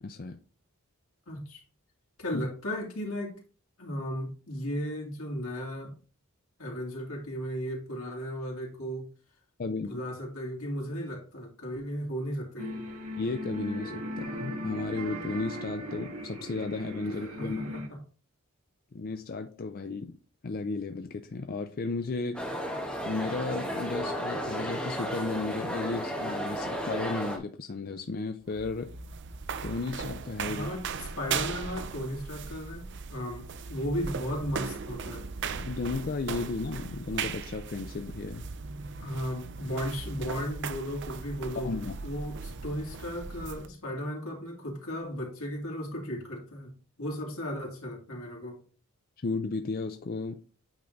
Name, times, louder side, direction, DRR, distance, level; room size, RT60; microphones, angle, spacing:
voice 1, 0.0-0.4 2.3-2.4 9.6-10.0 13.2-17.6 18.9-20.2 20.4-22.6 23.0-28.9 29.6-30.7 35.6-38.4 41.6-42.0 49.2-50.4, left 3 dB, 45° left, 0.5 m, -34 dB
voice 2, 1.3-1.6 2.2-3.4 3.8-6.0 6.6-9.1 9.8-12.9 17.2-17.8 30.5-35.3 39.0-48.6, equal, 80° left, 2.6 m, -35 dB
sound 1, 12.6-17.9, equal, 85° right, 1.8 m, -38 dB
sound 2, 22.3-27.4, equal, 5° left, 1.4 m, -33 dB
sound 3, 28.4-43.7, right 5 dB, 55° right, 0.6 m, -38 dB
8.8 x 3.7 x 3.9 m
head